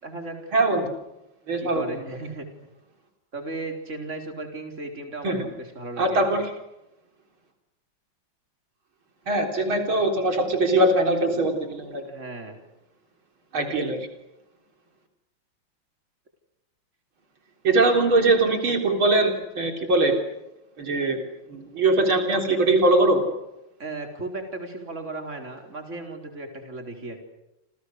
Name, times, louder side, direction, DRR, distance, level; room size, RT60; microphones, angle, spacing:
voice 1, 0.0-0.5 1.6-2.5 3.3-6.4 12.0-12.6 23.8-27.2, right 2 dB, 35° right, 4 dB, 4.6 m, -36 dB
voice 2, 0.5-0.9 1.5-1.8 5.2-5.4 6.0-6.5 9.3-12.0 13.5-14.0 17.6-20.2 20.8-21.2 21.5-23.2, right 2 dB, 85° right, 4 dB, 4.5 m, -21 dB
29.5 x 28.0 x 6.5 m, 0.91 s
omnidirectional pair, 2.2 m